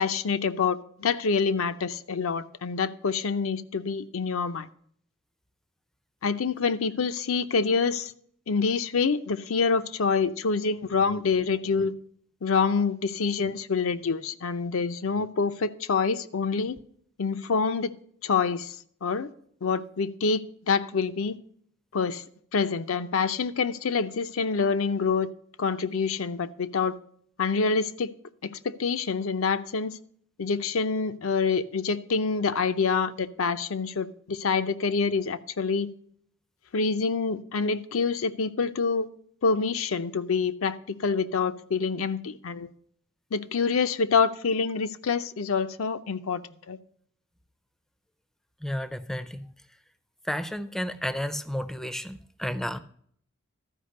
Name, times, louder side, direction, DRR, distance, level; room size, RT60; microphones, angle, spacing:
voice 1, 0.0-4.7 6.2-8.1 8.5-11.9 12.4-16.8 17.2-17.9 18.2-18.8 19.0-19.3 19.6-21.4 21.9-22.2 22.5-25.3 25.6-26.9 27.4-28.1 28.4-30.0 30.4-35.9 36.7-39.1 39.4-42.7 43.3-46.4 46.7-46.8, left 5 dB, 75° left, 0.6 m, -26 dB
voice 2, 48.6-49.5 50.3-52.8, equal, ahead, 0.5 m, -32 dB
13.0 x 5.1 x 6.4 m
head